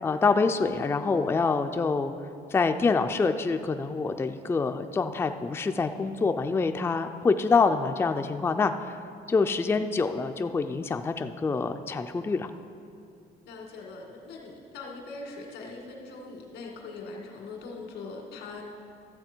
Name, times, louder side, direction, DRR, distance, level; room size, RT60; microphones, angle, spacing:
voice 1, 0.0-2.1 2.5-9.0 9.3-12.5, left 4 dB, 15° left, 7 dB, 0.4 m, -26 dB
voice 2, 13.5-18.6, left 3 dB, 90° left, 0 dB, 2.1 m, -41 dB
13.0 x 7.5 x 4.5 m, 2.5 s
cardioid pair, 110°, 17 cm